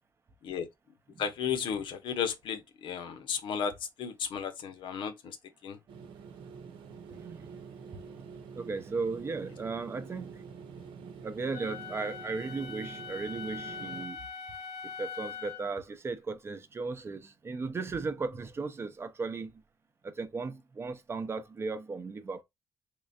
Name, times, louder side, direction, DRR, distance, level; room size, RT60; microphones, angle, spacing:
voice 1, 1.2-5.4 5.6-5.8, left 7 dB, 70° left, 0.8 m, -34 dB
sound 1, 5.9-14.1, right 6 dB, 85° right, 0.9 m, -47 dB
voice 2, 7.1-7.6 7.9-10.5 11.2-14.2 14.8-19.6 20.0-22.4, right 4 dB, 30° right, 0.6 m, -36 dB
Wind instrument woodwind instrument, 11.5-15.7, left 6 dB, 85° left, 1.2 m, -42 dB
3.7 x 3.2 x 2.4 m
cardioid pair, 125°, 9 cm